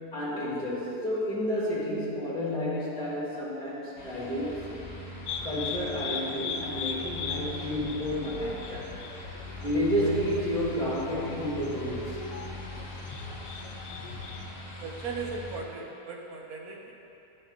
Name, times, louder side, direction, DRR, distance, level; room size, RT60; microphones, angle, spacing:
voice 1, 0.0-4.6 5.4-8.9 9.6-12.2, equal, 5° left, -8 dB, 1.6 m, -30 dB
sound 1, 4.0-15.6, left 1 dB, 40° left, 1.3 m, -42 dB
sound 2, 5.3-14.5, left 5 dB, 85° left, 1.2 m, -39 dB
voice 2, 14.8-16.9, right 4 dB, 65° right, 0 dB, 1.3 m, -37 dB
11.0 x 4.4 x 3.9 m, 2.8 s
omnidirectional pair, 1.8 m